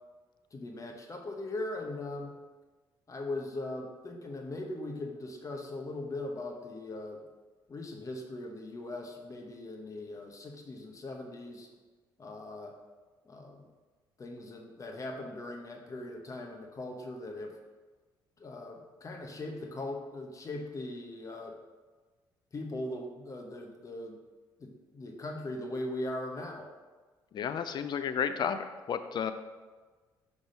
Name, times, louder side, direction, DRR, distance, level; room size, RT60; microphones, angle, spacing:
voice 1, 0.5-2.3 3.1-7.2 7.7-11.7 12.2-12.7 13.2-13.6 14.2-17.5 18.4-21.5 22.5-24.2 24.6-26.7, left 2 dB, 35° left, 2 dB, 1.1 m, -40 dB
voice 2, 27.3-29.3, left 7 dB, 55° left, 11 dB, 0.5 m, -32 dB
6.0 x 3.6 x 5.2 m, 1.3 s
supercardioid pair, 75°, 9 cm